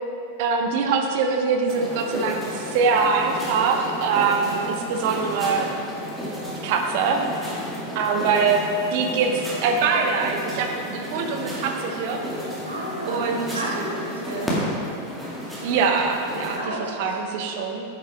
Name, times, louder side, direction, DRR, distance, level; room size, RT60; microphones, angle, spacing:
voice 1, 0.4-5.7 6.6-7.2 7.9-12.2 13.1-13.4 15.6-16.6 17.0-17.8, right 5 dB, 50° right, 3 dB, 0.9 m, -23 dB
sound 1, 1.7-16.6, equal, 5° right, 2.2 m, -32 dB
voice 2, 8.2-8.6 12.6-14.5 16.6-17.4, right 1 dB, 75° right, -4 dB, 1.8 m, -32 dB
10.0 x 7.9 x 3.6 m, 2.8 s
figure-of-eight pair, 90°, 0 cm